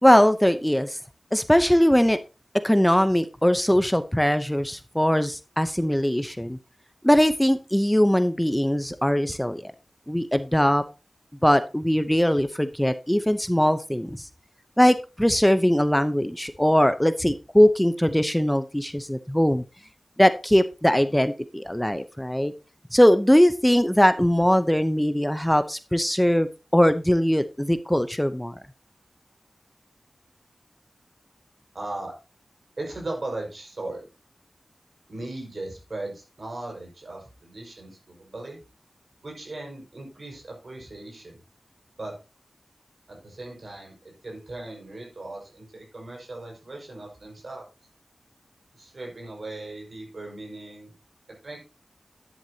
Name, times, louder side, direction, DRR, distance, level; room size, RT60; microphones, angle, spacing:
voice 1, 0.0-1.0 1.3-2.2 2.6-6.6 7.0-9.7 10.1-10.8 11.4-14.3 14.8-19.6 20.2-22.5 22.9-28.6, equal, 10° left, 11 dB, 0.8 m, -21 dB
voice 2, 31.7-32.1 32.8-34.1 35.1-38.6 39.2-41.4 42.0-42.2 43.1-47.7 48.7-50.9 51.4-51.6, right 2 dB, 65° right, 1 dB, 5.3 m, -38 dB
11.0 x 10.5 x 2.9 m, 0.29 s
cardioid pair, 45°, 0 cm